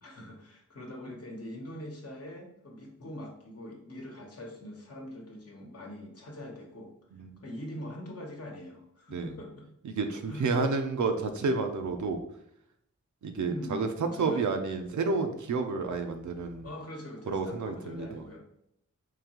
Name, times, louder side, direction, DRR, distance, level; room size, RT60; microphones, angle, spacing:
voice 1, 0.0-6.9 7.4-9.7 10.1-10.5 13.5-14.6 16.6-18.5, left 1 dB, 55° left, 0 dB, 1.0 m, -43 dB
voice 2, 9.8-12.2 13.2-13.9 14.2-16.7 17.3-18.2, right 4 dB, 80° right, 6 dB, 0.5 m, -30 dB
3.8 x 2.8 x 2.9 m, 0.76 s
cardioid pair, 60°, 29 cm